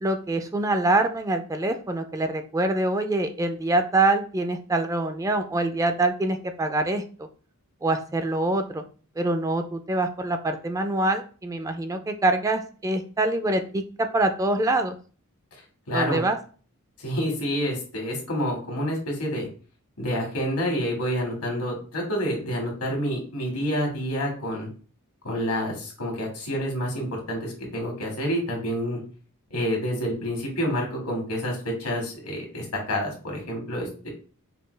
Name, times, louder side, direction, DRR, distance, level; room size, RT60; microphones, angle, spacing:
voice 1, 0.0-7.3 7.8-8.8 9.2-15.0 15.9-16.4, right 2 dB, 15° right, 7 dB, 0.4 m, -25 dB
voice 2, 15.9-16.2 17.0-19.5 20.0-24.7 25.2-29.0 29.5-34.1, equal, 80° left, 0 dB, 1.7 m, -28 dB
5.3 x 2.3 x 3.2 m, 0.38 s
head